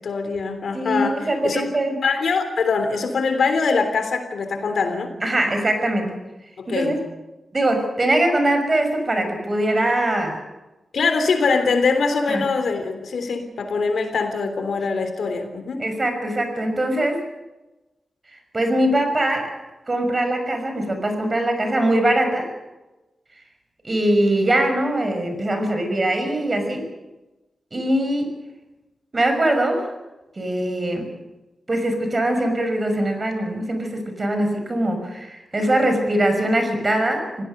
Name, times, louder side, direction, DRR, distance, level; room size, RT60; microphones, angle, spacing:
voice 1, 0.0-1.6 2.0-5.1 6.6-6.9 10.9-15.8, left 4 dB, 80° left, 7 dB, 3.4 m, -23 dB
voice 2, 0.7-2.0 5.2-6.2 6.7-7.0 7.5-10.4 12.3-12.4 15.8-17.2 18.5-19.6 19.9-22.5 23.8-26.9 27.7-28.4 29.1-29.9 30.4-31.1 31.7-37.4, right 1 dB, 35° right, 6 dB, 6.0 m, -22 dB
26.0 x 17.0 x 6.7 m, 1.1 s
cardioid pair, 65°, 0 cm